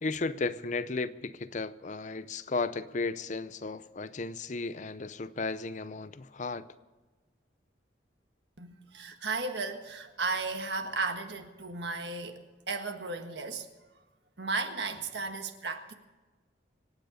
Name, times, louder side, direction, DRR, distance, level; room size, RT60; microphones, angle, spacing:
voice 1, 0.0-6.7, left 3 dB, 40° left, 0.6 m, -34 dB
voice 2, 8.6-12.4 12.7-13.7 14.4-15.9, right 4 dB, 65° right, 1.6 m, -34 dB
25.5 x 9.2 x 5.1 m
head